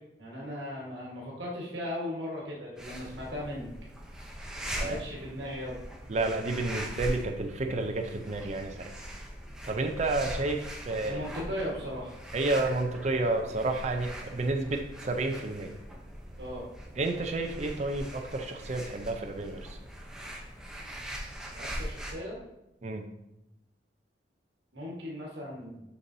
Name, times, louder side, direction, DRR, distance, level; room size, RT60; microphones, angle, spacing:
voice 1, 0.2-3.7 4.8-5.8 11.0-12.1 16.4-16.7 21.5-22.4 24.7-25.8, left 1 dB, 75° right, -4 dB, 1.4 m, -37 dB
sound 1, 2.8-22.1, equal, 5° right, 0.7 m, -41 dB
voice 2, 6.1-8.9 9.6-11.2 12.3-15.7 17.0-19.8 22.8-23.0, right 2 dB, 40° right, 3 dB, 0.5 m, -30 dB
6.9 x 5.3 x 2.7 m, 0.90 s
head